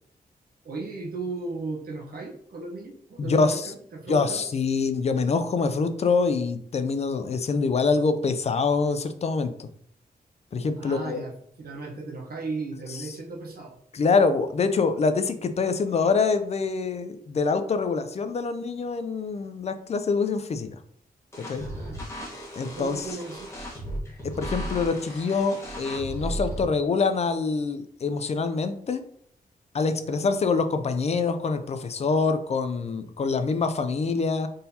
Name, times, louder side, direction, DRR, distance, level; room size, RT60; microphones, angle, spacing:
voice 1, 0.6-4.5 10.8-11.3 11.6-13.8 21.6-22.0 22.6-23.5 30.0-30.2, right 3 dB, 70° right, 1 dB, 1.0 m, -36 dB
voice 2, 3.2-3.7 4.1-9.7 10.5-11.2 13.9-20.8 21.4-21.6 22.5-23.1 24.2-29.0 29.7-34.5, left 4 dB, 40° left, 9 dB, 0.4 m, -25 dB
sound 1, 21.3-26.6, equal, 15° left, 1.3 m, -35 dB
4.0 x 3.8 x 2.8 m, 0.66 s
wide cardioid pair, 145°, 16 cm